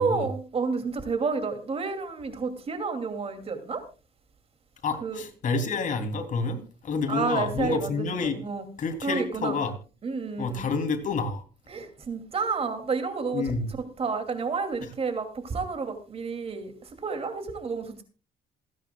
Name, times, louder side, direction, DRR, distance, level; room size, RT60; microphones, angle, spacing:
voice 1, 0.0-3.8 5.0-5.2 7.1-8.7 9.0-9.6 10.0-10.7 11.7-13.5 14.0-18.0, right 4 dB, 35° right, 2.6 m, -30 dB
voice 2, 4.8-8.4 8.8-9.7 10.4-11.4 13.3-13.7, left 4 dB, 50° left, 3.0 m, -29 dB
27.5 x 10.0 x 2.3 m
cardioid pair, 110°, 17 cm